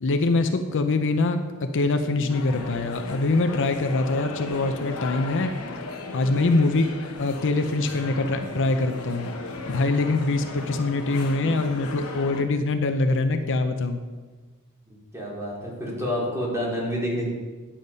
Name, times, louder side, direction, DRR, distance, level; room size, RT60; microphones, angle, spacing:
voice 1, 0.0-5.5 6.1-6.9 7.2-9.3 9.7-14.0, left 3 dB, 60° left, 7 dB, 0.6 m, -24 dB
sound 1, 2.3-12.4, left 3 dB, 75° left, 1.1 m, -36 dB
voice 2, 14.9-17.3, equal, 15° right, -4 dB, 2.8 m, -29 dB
9.8 x 7.4 x 5.3 m, 1.4 s
head